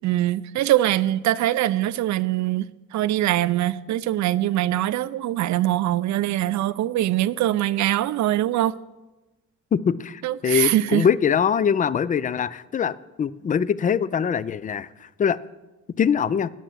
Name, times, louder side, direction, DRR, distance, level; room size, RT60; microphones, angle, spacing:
voice 1, 0.0-2.7 2.9-8.8 10.2-11.1, right 14 dB, 70° right, 0.5 m, -23 dB
voice 2, 9.7-14.9 15.2-15.4 16.0-16.5, left 7 dB, 25° left, 0.4 m, -23 dB
9.3 x 7.4 x 7.4 m
cardioid pair, 90°, 30 cm